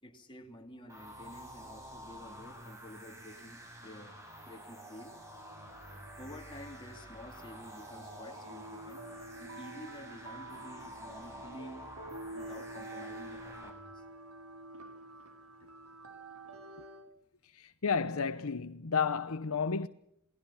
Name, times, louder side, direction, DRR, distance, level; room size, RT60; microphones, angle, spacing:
voice 1, 0.0-5.1 6.2-9.0 9.4-11.9 12.3-14.0, left 1 dB, 20° left, 3.0 m, -50 dB
sound 1, 0.9-13.7, equal, 15° right, 7.4 m, -49 dB
sound 2, 4.7-17.1, right 2 dB, 75° right, 4.0 m, -49 dB
voice 2, 17.5-19.9, left 5 dB, 70° left, 0.9 m, -32 dB
28.5 x 19.5 x 5.9 m
head